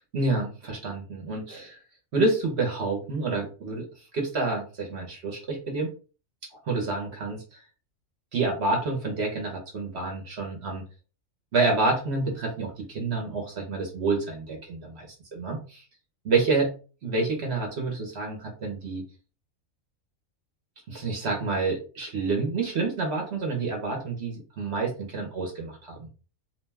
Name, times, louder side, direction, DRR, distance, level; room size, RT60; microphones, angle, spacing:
voice 1, 0.1-1.8 2.1-3.9 4.1-5.9 6.7-7.6 8.3-10.8 11.5-15.1 15.3-15.8 16.2-16.7 17.0-19.0 20.9-26.0, right 3 dB, 55° right, 1 dB, 1.0 m, -28 dB
2.7 x 2.2 x 3.2 m, 0.36 s
omnidirectional pair, 1.5 m